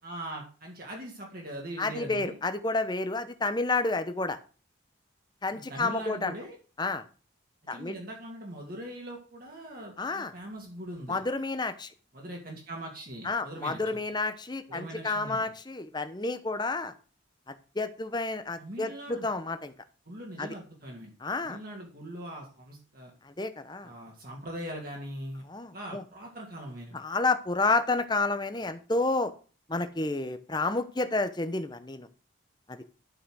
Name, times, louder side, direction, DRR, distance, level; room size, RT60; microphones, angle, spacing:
voice 1, 0.0-2.4 5.7-6.6 7.7-11.2 12.1-14.0 14.7-15.5 18.6-19.3 20.0-21.1 21.4-23.1 23.8-25.4 25.7-27.0, right 1 dB, 45° right, -1 dB, 2.7 m, -41 dB
voice 2, 1.8-4.4 5.4-6.3 6.8-7.0 7.7-8.0 10.0-10.3 11.1-11.9 13.2-16.9 17.5-19.7 20.4-20.5 21.2-21.6 23.2-23.9 25.5-26.0 26.9-29.3 29.7-32.1 32.7-32.8, left 3 dB, 20° left, 10 dB, 0.9 m, -30 dB
11.5 x 5.9 x 6.3 m, 0.37 s
head